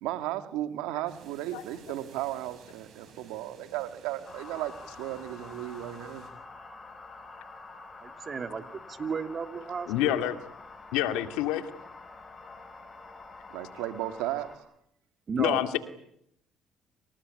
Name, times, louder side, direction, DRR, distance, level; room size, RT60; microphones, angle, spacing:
voice 1, 0.0-4.7 5.0-6.2 13.5-14.5, right 14 dB, 85° right, 9 dB, 2.5 m, -35 dB
sound 1, 1.1-6.3, right 6 dB, 60° right, 8.0 m, -55 dB
sound 2, 4.2-14.6, left 3 dB, 30° left, 7.4 m, -47 dB
voice 2, 8.0-8.6 8.9-10.2 15.3-15.6, right 5 dB, 40° right, 8 dB, 3.1 m, -34 dB
voice 3, 9.9-10.4 10.9-11.7 15.4-15.8, left 12 dB, 85° left, 9 dB, 2.3 m, -27 dB
27.5 x 19.5 x 9.9 m, 0.75 s
supercardioid pair, 80°, 0 cm